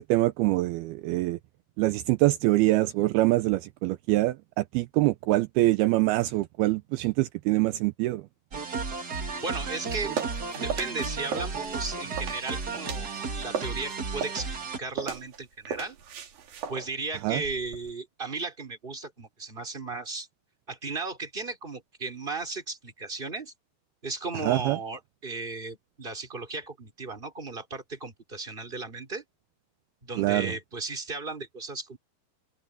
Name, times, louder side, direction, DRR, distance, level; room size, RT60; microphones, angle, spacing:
voice 1, 0.0-1.4 1.8-8.2 17.2-17.4 24.4-24.8 30.2-30.5, right 18 dB, 80° right, 2.5 m, -24 dB
sound 1, 8.5-14.8, right 4 dB, 35° right, 1.8 m, -34 dB
voice 2, 9.4-10.2 10.5-16.0 16.7-20.3 20.7-23.5 24.0-29.2 30.0-32.0, right 3 dB, 15° right, 4.1 m, -35 dB
sound 2, 9.7-13.2 13.5-17.9, right 7 dB, 65° right, 4.2 m, -37 dB
omnidirectional pair, 4.6 m